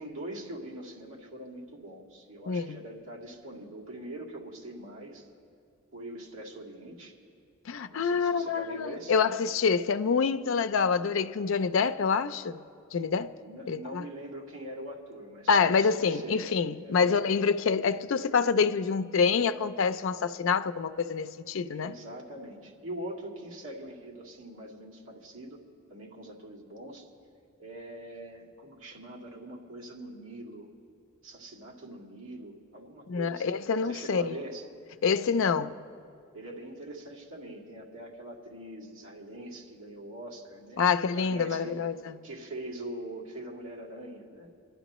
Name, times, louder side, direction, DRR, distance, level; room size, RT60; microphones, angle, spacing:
voice 1, 0.0-5.3 5.9-7.1 7.9-9.2 13.4-16.6 16.8-17.3 21.6-25.6 25.9-27.1 27.6-30.7 31.2-33.5 33.8-34.6 35.4-35.6 36.3-40.8 41.1-41.8 42.2-44.5, right 1 dB, 80° right, 2.2 m, -43 dB
voice 2, 2.5-2.8 7.7-12.6 12.9-13.3 13.7-14.0 15.5-21.9 33.1-34.4 35.0-35.7 40.8-42.1, left 5 dB, 65° left, 0.4 m, -26 dB
28.5 x 11.5 x 3.0 m
head